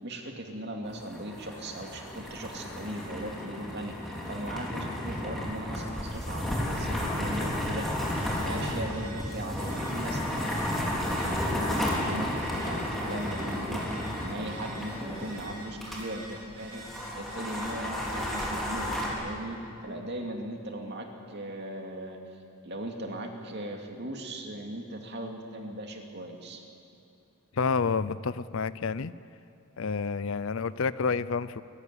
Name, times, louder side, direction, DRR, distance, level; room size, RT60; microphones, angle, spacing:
voice 1, 0.0-7.9 8.4-16.8 17.1-19.6 19.8-22.2 22.6-26.6, right 1 dB, 50° right, 2 dB, 2.6 m, -38 dB
sound 1, 0.8-16.0 16.3-16.4 16.7-19.1, left 1 dB, ahead, 3.7 m, -33 dB
Telephone, 8.1-19.3, right 1 dB, 75° right, 7.6 m, -45 dB
voice 2, 27.6-29.1 29.8-31.6, left 5 dB, 60° left, 17 dB, 0.5 m, -29 dB
23.5 x 15.0 x 9.8 m, 2.6 s
head